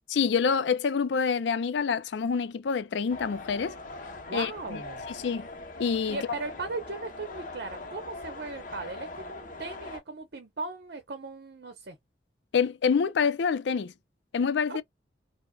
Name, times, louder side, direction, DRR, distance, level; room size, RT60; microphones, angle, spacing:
voice 1, 0.1-3.7 4.3-4.8 5.2-5.5 5.8-6.2 12.5-13.9 14.3-14.8, left 6 dB, 75° left, 0.4 m, -27 dB
sound 1, 3.1-10.0, left 2 dB, 45° left, 0.9 m, -42 dB
voice 2, 4.2-5.1 6.1-12.0 14.7-14.8, right 3 dB, 60° right, 0.7 m, -38 dB
4.7 x 2.1 x 2.3 m
head